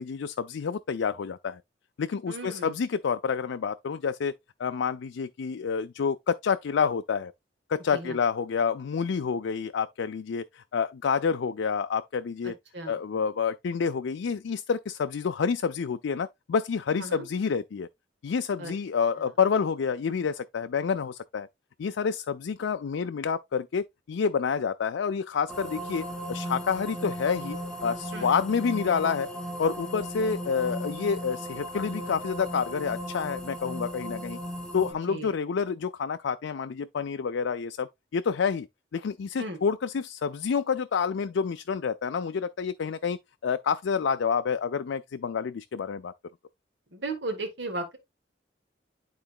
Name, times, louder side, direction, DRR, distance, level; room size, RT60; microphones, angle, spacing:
voice 1, 0.0-1.6 2.0-4.3 4.6-7.3 7.7-12.6 12.9-17.9 18.2-21.5 21.8-29.3 29.6-34.4 34.7-38.7 38.9-46.1, left 6 dB, 90° left, 0.4 m, -28 dB
voice 2, 2.3-2.7 7.9-8.2 12.4-13.0 17.0-17.2 18.6-18.7 19.2-19.3 28.1-28.3 35.1-35.3 39.4-39.6 46.9-48.0, right 2 dB, 70° right, 1.9 m, -36 dB
sound 1, 25.5-34.9, equal, 5° left, 0.7 m, -36 dB
11.0 x 4.0 x 2.4 m
head